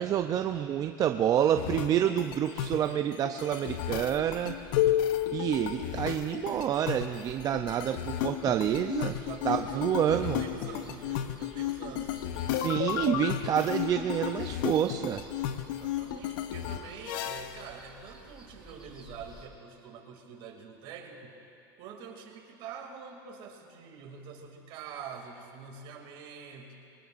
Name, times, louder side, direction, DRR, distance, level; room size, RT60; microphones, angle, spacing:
voice 1, 0.0-4.6 5.3-9.2 9.4-10.4 12.5-15.2, right 10 dB, 35° right, 7 dB, 0.5 m, -28 dB
sound 1, 1.6-17.7, left 11 dB, 70° left, 0.7 m, -33 dB
sound 2, 3.8-19.5, right 1 dB, 10° right, 3.5 m, -53 dB
voice 2, 9.1-12.2 15.6-21.4 21.8-26.7, right 6 dB, 50° right, 1 dB, 2.6 m, -45 dB
23.5 x 19.0 x 2.5 m, 2.7 s
supercardioid pair, 120°, 11 cm